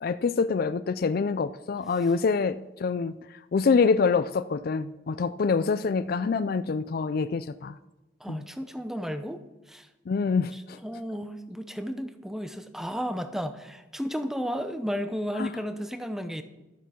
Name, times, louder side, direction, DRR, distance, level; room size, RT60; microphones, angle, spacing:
voice 1, 0.0-3.2 3.5-7.8 8.3-8.4 10.1-10.8 15.4-15.5, left 5 dB, 55° left, 12 dB, 0.4 m, -26 dB
voice 2, 8.2-9.4 9.7-9.9 10.8-16.4, equal, ahead, 9 dB, 0.7 m, -33 dB
12.5 x 8.2 x 5.8 m, 1.0 s
head